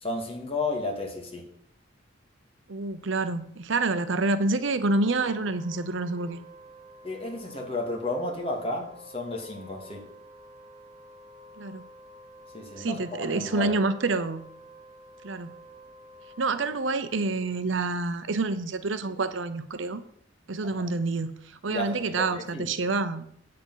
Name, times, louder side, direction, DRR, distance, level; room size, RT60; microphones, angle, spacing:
voice 1, 0.0-1.5 7.0-10.1 12.5-13.7 20.6-20.9 21.7-22.7, left 2 dB, 30° left, 1 dB, 2.0 m, -33 dB
voice 2, 2.7-6.4 11.6-11.8 12.8-14.4 15.2-15.5 16.4-20.0 20.5-23.3, right 3 dB, 75° right, 12 dB, 0.7 m, -28 dB
Wind instrument woodwind instrument, 4.7-18.1, equal, 35° right, 0.8 m, -50 dB
8.5 x 7.7 x 5.6 m, 0.68 s
head